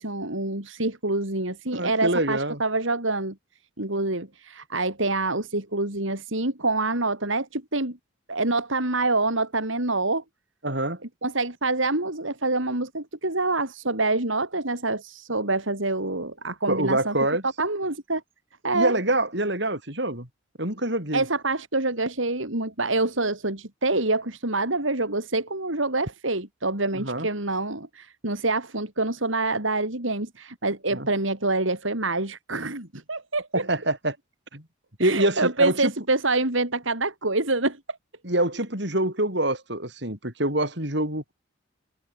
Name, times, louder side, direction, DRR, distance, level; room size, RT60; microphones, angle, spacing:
voice 1, 0.0-3.3 3.8-8.0 8.3-10.2 11.2-17.1 17.4-18.2 18.6-18.9 21.1-33.7 35.0-38.0, right 2 dB, 75° right, 5.0 m, -26 dB
voice 2, 1.7-2.6 10.6-11.0 16.7-17.4 18.7-20.3 20.6-21.2 26.9-27.3 30.9-31.1 33.5-34.2 34.5-34.6 35.0-35.9 38.2-41.3, right 1 dB, 55° right, 7.1 m, -25 dB
head